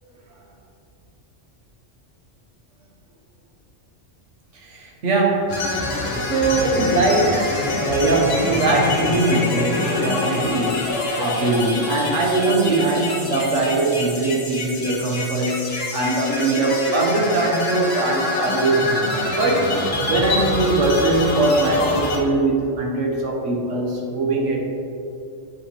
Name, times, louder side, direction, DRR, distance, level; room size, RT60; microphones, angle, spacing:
voice 1, 4.6-5.6 6.3-19.8 20.1-24.6, right 2 dB, 90° right, -1 dB, 1.5 m, -21 dB
sound 1, 5.5-22.2, left 2 dB, 80° left, 1.4 m, -26 dB
9.0 x 5.5 x 3.1 m, 2.6 s
omnidirectional pair, 1.2 m